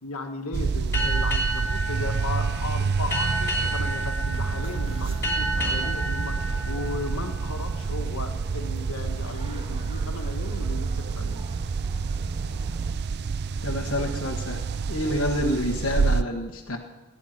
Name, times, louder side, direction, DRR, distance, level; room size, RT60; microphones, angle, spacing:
voice 1, 0.0-11.4 15.4-15.5, left 3 dB, 75° left, 4 dB, 1.8 m, -36 dB
sound 1, 0.5-16.2, right 5 dB, 45° right, 0.4 m, -28 dB
Boat Water vehicle, 0.9-8.0, right 1 dB, 15° left, 4.6 m, -31 dB
sound 2, 1.9-12.9, right 1 dB, 25° right, 1.6 m, -43 dB
voice 2, 13.6-16.8, left 1 dB, 60° left, -1 dB, 1.5 m, -28 dB
20.0 x 10.5 x 6.1 m, 1.1 s
head